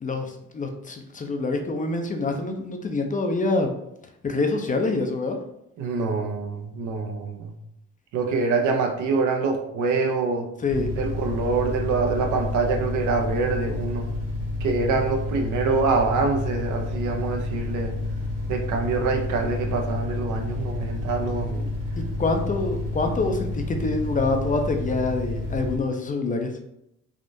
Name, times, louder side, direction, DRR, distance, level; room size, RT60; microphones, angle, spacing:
voice 1, 0.0-3.7 4.2-5.4 10.6-10.9 21.6-21.7 22.0-26.5, left 3 dB, 25° left, 4 dB, 0.4 m, -26 dB
voice 2, 5.8-7.5 8.1-10.5 11.0-14.1 14.6-17.9 18.5-21.7, right 4 dB, 80° right, 4 dB, 0.6 m, -25 dB
sound 1, 10.7-25.8, left 2 dB, 55° right, 1.4 m, -30 dB
3.5 x 2.5 x 2.6 m, 0.80 s
cardioid pair, 90°, 30 cm